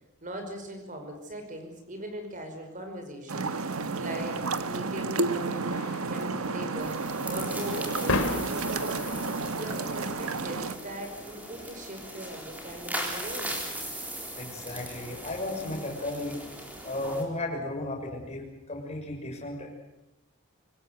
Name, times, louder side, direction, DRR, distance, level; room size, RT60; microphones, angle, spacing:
voice 1, 0.2-9.1 9.6-13.6, equal, 35° right, 5 dB, 5.3 m, -40 dB
sound 1, 3.3-10.8, right 3 dB, 85° right, 1.4 m, -31 dB
sound 2, 5.5-15.5, left 2 dB, 75° left, 2.8 m, -39 dB
sound 3, 6.8-17.2, right 1 dB, 5° right, 4.1 m, -39 dB
voice 2, 14.3-16.4 16.8-19.7, left 1 dB, 30° left, -1 dB, 6.3 m, -34 dB
25.5 x 20.0 x 8.1 m, 0.90 s
head